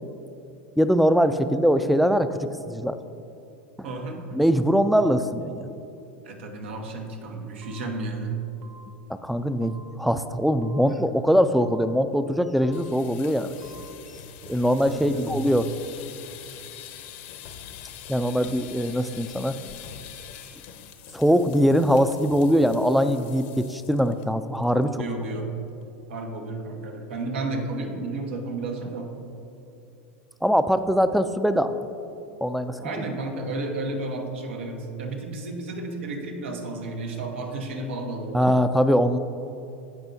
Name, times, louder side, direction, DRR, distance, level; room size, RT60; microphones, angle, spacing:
voice 1, 0.8-3.0 3.8-3.9 4.3-5.7 9.2-13.6 14.5-15.7 18.1-19.6 21.1-24.9 30.4-31.9 32.4-32.8 38.3-39.2, equal, ahead, 11 dB, 0.4 m, -22 dB
voice 2, 3.8-4.2 6.2-8.4 10.0-10.1 14.9-15.4 25.0-25.5 26.1-29.1 32.8-38.5, right 2 dB, 80° right, 3 dB, 1.2 m, -32 dB
sound 1, 7.6-8.2 8.6-9.2 9.6-10.2 10.6-11.2 11.6-12.2 12.6-13.2 13.6-14.2, right 2 dB, 55° right, 1.1 m, -52 dB
sound 2, 12.7-24.2 24.6-24.8 25.2-25.3 25.6-26.0, left 9 dB, 65° left, 0.8 m, -44 dB
15.5 x 5.4 x 2.7 m, 2.7 s
hypercardioid pair, 105°, 6 cm